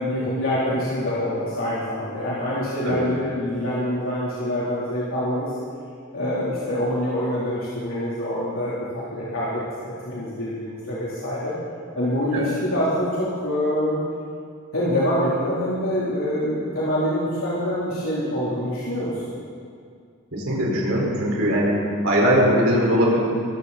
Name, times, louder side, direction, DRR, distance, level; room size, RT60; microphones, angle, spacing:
voice 1, 0.0-5.5 6.1-8.8 9.1-11.5 11.9-14.0 14.7-19.1, left 1 dB, 65° left, -9 dB, 3.5 m, -25 dB
voice 2, 20.3-21.8 22.0-23.2, equal, 65° right, -4 dB, 4.9 m, -20 dB
22.5 x 15.0 x 4.2 m, 2.3 s
head